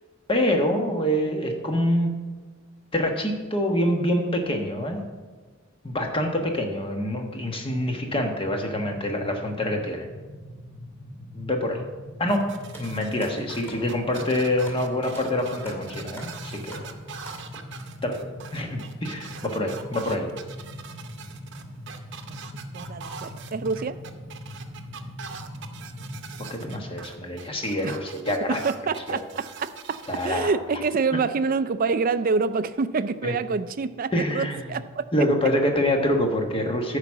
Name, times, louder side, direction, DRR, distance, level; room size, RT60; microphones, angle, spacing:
voice 1, 0.3-2.1 2.9-5.0 5.8-10.1 11.3-11.8 12.2-12.5 12.8-16.8 18.0-18.2 18.5-20.3 26.5-28.6 29.1-29.2 30.1-30.5 33.2-33.3 34.1-34.6 35.1-37.0, left 1 dB, 25° left, 3 dB, 1.2 m, -26 dB
sound 1, 7.8-26.9, left 1 dB, 65° left, 2.1 m, -42 dB
sound 2, 12.3-30.3, right 6 dB, 60° right, 0.8 m, -42 dB
sound 3, 12.7-17.8 18.5-18.7 19.4-19.5 19.7-19.9 20.9-21.1 21.5-21.6 22.2-22.3 22.7-22.9 23.3-23.5, equal, 10° left, 2.2 m, -45 dB
voice 2, 22.7-24.0 27.8-28.0 28.5-30.0 30.2-35.0, right 4 dB, 45° right, 13 dB, 0.4 m, -26 dB
11.0 x 4.9 x 7.3 m, 1.3 s
head